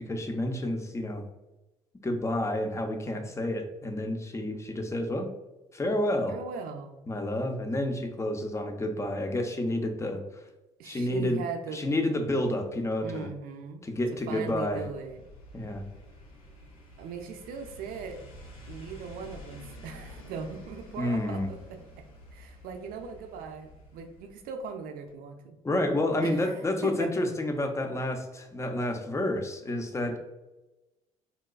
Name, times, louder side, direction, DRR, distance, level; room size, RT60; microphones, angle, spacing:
voice 1, 0.1-1.2 2.0-5.3 5.7-6.4 7.1-10.2 10.8-11.4 11.7-13.3 13.8-14.8 15.5-15.8 21.0-21.5 25.6-30.2, left 1 dB, 15° left, 4 dB, 0.5 m, -29 dB
voice 2, 6.3-7.0 10.8-11.8 13.0-13.8 14.3-15.2 17.0-18.2 18.7-21.8 22.3-25.6 26.2-27.1, right 5 dB, 55° right, 5 dB, 0.5 m, -39 dB
sound 1, 14.5-24.8 25.1-25.2, left 1 dB, 90° left, 0.5 m, -49 dB
3.9 x 2.2 x 2.3 m, 1.0 s
hypercardioid pair, 55°, 18 cm